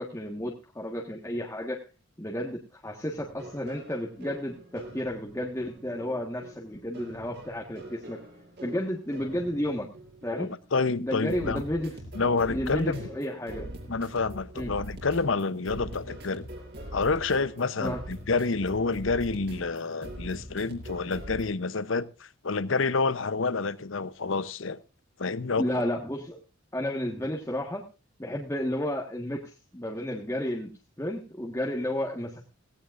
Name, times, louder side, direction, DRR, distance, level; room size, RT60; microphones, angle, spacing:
voice 1, 0.0-1.9 2.2-8.2 8.6-9.9 10.2-10.5 11.0-12.0 12.2-13.7 14.5-14.7 17.8-18.0 25.6-26.4 26.7-27.8 28.2-30.7 31.0-32.5, left 1 dB, 15° left, 1.5 m, -32 dB
sound 1, 3.1-21.4, right 1 dB, 50° right, 5.6 m, -43 dB
voice 2, 10.4-11.6 12.1-13.0 13.9-16.4 16.9-24.8 25.2-25.7, left 4 dB, 70° left, 0.8 m, -28 dB
17.0 x 17.0 x 2.5 m
head